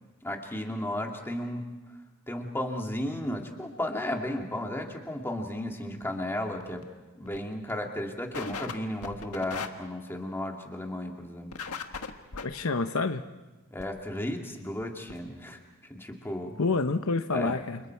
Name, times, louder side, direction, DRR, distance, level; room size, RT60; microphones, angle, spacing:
voice 1, 0.2-1.7 2.3-6.9 7.2-11.5 13.7-15.6 15.9-16.6 17.3-17.6, left 1 dB, 10° left, 1 dB, 2.5 m, -34 dB
sound 1, 6.6-6.8 7.3-7.4 7.7-7.8 8.3-8.7 9.0-9.7 11.5-12.4 13.8-13.9 14.5-14.6 14.8-14.9 15.1-15.2, left 5 dB, 85° left, 1.6 m, -37 dB
voice 2, 12.4-13.2 16.6-17.8, left 3 dB, 65° left, 8 dB, 0.9 m, -28 dB
29.5 x 28.0 x 4.7 m, 1.1 s
head